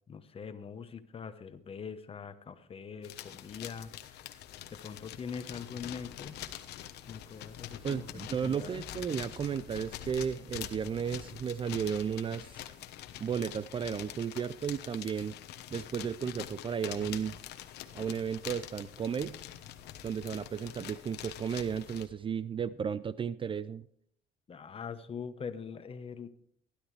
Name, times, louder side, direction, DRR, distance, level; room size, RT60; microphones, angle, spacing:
voice 1, 0.1-4.4 4.8-6.4 7.1-8.1 8.4-8.8 24.5-26.3, left 6 dB, 35° left, 11 dB, 1.1 m, -43 dB
sound 1, 3.0-22.1, left 11 dB, 80° left, 1.1 m, -45 dB
voice 2, 7.8-12.7 13.2-15.3 15.7-17.3 17.9-19.4 20.0-23.9, right 7 dB, 30° right, 17 dB, 0.4 m, -34 dB
16.0 x 11.5 x 3.3 m, 0.65 s
cardioid pair, 110°, 17 cm